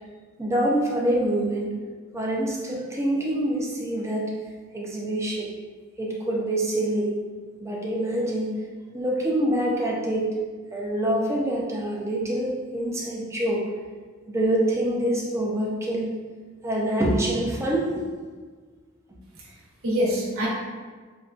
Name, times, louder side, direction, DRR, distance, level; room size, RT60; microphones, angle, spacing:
voice 1, 0.4-1.7 2.1-4.3 4.7-5.5 6.0-7.1 7.6-8.5 8.9-10.3 10.7-13.6 14.3-16.1 16.6-18.0, right 1 dB, 15° right, -3 dB, 0.5 m, -25 dB
voice 2, 19.3-20.5, equal, 80° right, -5 dB, 1.1 m, -26 dB
4.9 x 2.2 x 2.4 m, 1.5 s
head